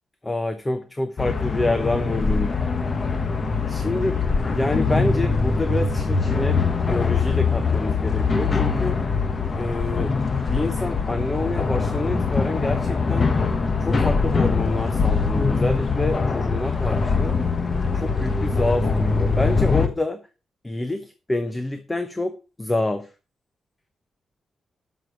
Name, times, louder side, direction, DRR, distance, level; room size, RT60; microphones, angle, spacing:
voice 1, 0.2-2.6 3.7-4.2 4.5-6.6 6.9-9.0 9.6-10.1 10.5-13.3 13.8-17.4 17.9-20.2 20.6-23.1, left 2 dB, 10° left, 8 dB, 0.8 m, -27 dB
sound 1, 1.2-19.9, left 4 dB, 30° left, 1.1 m, -22 dB
12.0 x 6.2 x 4.9 m, 0.33 s
wide cardioid pair, 170°, 0 cm